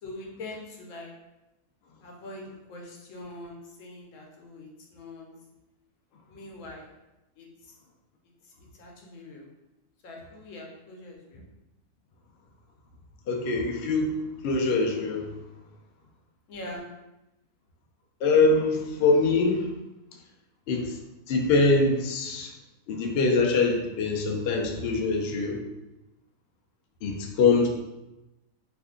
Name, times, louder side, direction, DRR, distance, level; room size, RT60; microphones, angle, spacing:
voice 1, 0.0-1.1 2.0-5.3 6.3-6.9 7.4-7.7 8.7-9.5 10.0-11.4 16.5-16.8, left 2 dB, 65° left, -1 dB, 1.0 m, -43 dB
voice 2, 13.3-14.1 14.4-15.3 18.2-19.7 20.7-21.0 21.3-22.5 22.9-25.6 27.0-27.7, left 3 dB, 80° left, 1 dB, 0.5 m, -23 dB
2.6 x 2.5 x 3.5 m, 0.97 s
omnidirectional pair, 1.6 m